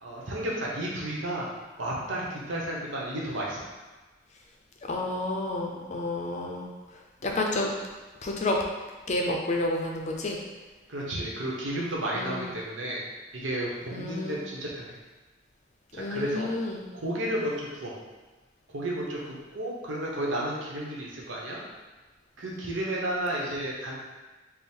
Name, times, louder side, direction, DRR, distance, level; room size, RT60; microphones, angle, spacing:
voice 1, 0.0-1.5 1.8-3.6 10.9-13.0 13.3-15.0 15.9-16.5 16.9-17.9 18.7-21.6 22.4-23.9, right 1 dB, 85° right, -4 dB, 0.9 m, -32 dB
voice 2, 4.9-6.7 7.2-7.7 8.2-8.6 9.1-10.4 12.1-12.5 13.9-14.5 15.9-16.9, left 2 dB, 35° left, 0 dB, 0.5 m, -30 dB
3.5 x 2.1 x 4.3 m, 1.2 s
head